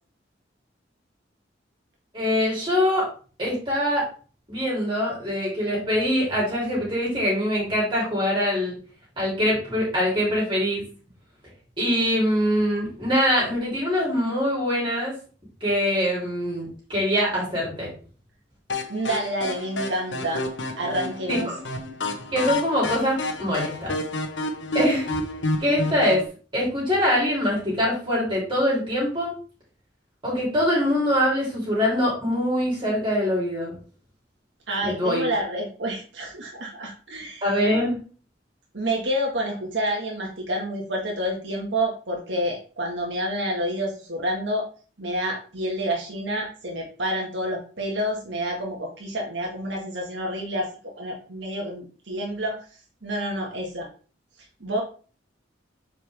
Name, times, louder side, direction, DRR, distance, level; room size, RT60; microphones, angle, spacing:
voice 1, 2.1-3.1 3.4-4.0 4.5-8.7 9.2-10.8 11.8-15.1 15.6-17.9 21.3-21.5 22.3-23.9 24.7-25.2 25.6-26.2 26.5-29.3 30.2-33.8 34.8-35.3 37.4-38.0, equal, 25° right, -5 dB, 3.4 m, -23 dB
sound 1, 18.7-26.3, left 2 dB, 85° left, 1.2 m, -30 dB
voice 2, 18.9-20.5 20.8-21.5 34.7-37.5 38.7-44.7 45.0-52.7 53.0-53.9 54.6-54.8, equal, 80° right, -1 dB, 1.8 m, -28 dB
8.0 x 5.0 x 3.5 m, 0.38 s
head